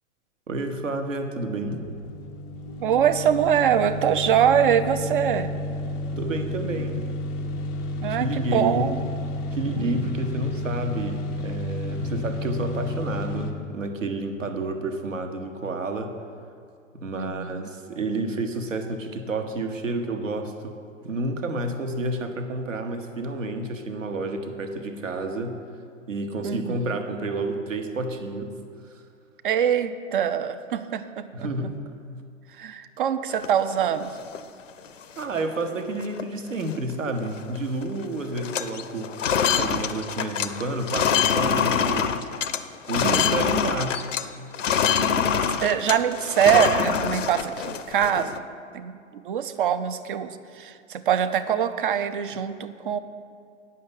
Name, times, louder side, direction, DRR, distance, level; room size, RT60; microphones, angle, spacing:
voice 1, 0.5-1.9 6.2-7.1 8.1-8.9 9.5-16.1 16.9-20.8 21.0-25.6 26.1-28.6 28.8-29.0 31.3-31.8 35.2-39.1 39.5-42.1 42.9-44.0, right 2 dB, 70° right, 6 dB, 1.1 m, -30 dB
sound 1, 1.7-13.5, left 1 dB, 10° left, 0.4 m, -31 dB
voice 2, 2.8-5.5 8.0-9.0 9.8-10.1 17.1-17.7 26.4-27.0 29.4-31.5 32.6-34.1 43.0-43.4 45.6-48.3 48.7-53.0, right 9 dB, 40° right, 12 dB, 0.5 m, -24 dB
sound 2, 33.3-34.4 34.9-35.0 35.2-35.6 36.0-36.2 36.5-37.6 37.8-38.1 38.3-44.3 44.5-48.4, left 7 dB, 70° left, 0.6 m, -25 dB
9.5 x 5.6 x 7.2 m, 2.3 s
figure-of-eight pair, 110°, 39 cm